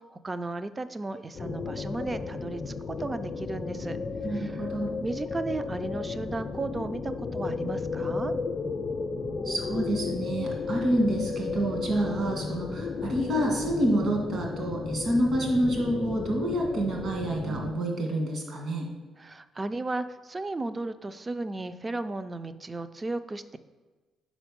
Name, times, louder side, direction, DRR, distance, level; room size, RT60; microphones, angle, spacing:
voice 1, 0.0-4.0 4.3-4.7 5.0-8.3 19.2-23.6, right 2 dB, 25° right, 12 dB, 0.4 m, -34 dB
sound 1, 1.3-17.7, left 4 dB, 45° left, 0.5 m, -34 dB
voice 2, 4.2-4.9 9.4-18.9, right 1 dB, 60° right, 1 dB, 1.7 m, -28 dB
5.0 x 4.5 x 5.1 m, 1.3 s
cardioid pair, 90°, 0 cm